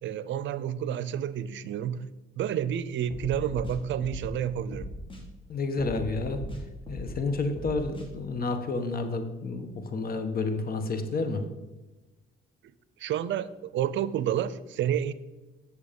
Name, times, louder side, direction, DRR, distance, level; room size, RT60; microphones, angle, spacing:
voice 1, 0.0-2.1 2.4-4.9 13.0-15.1, right 9 dB, 70° right, 15 dB, 0.6 m, -30 dB
sound 1, 3.1-4.4 4.7-5.2 5.8-7.2 7.6-8.1, left 1 dB, 25° left, 2.3 m, -39 dB
voice 2, 5.5-6.4 6.9-11.4, left 3 dB, 50° left, 8 dB, 1.3 m, -30 dB
8.9 x 6.7 x 5.3 m, 1.1 s
cardioid pair, 90°, 20 cm